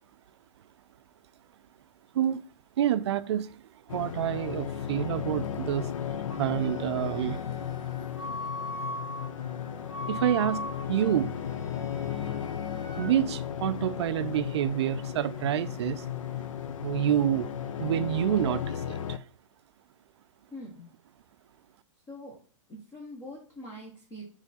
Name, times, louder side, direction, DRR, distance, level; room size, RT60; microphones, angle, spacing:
voice 1, 2.8-5.9 6.4-7.4 10.1-11.4 13.0-16.0 16.8-17.5 17.8-19.2, right 10 dB, 55° right, 0.5 m, -28 dB
sound 1, 3.9-19.2, left 9 dB, 85° left, 0.5 m, -35 dB
Wind instrument woodwind instrument, 6.3-13.1, left 1 dB, 40° left, 2.0 m, -41 dB
voice 2, 20.5-20.9 22.1-22.4 22.7-24.2, left 1 dB, 15° left, 0.8 m, -43 dB
7.1 x 3.3 x 4.1 m
hypercardioid pair, 160°, 17 cm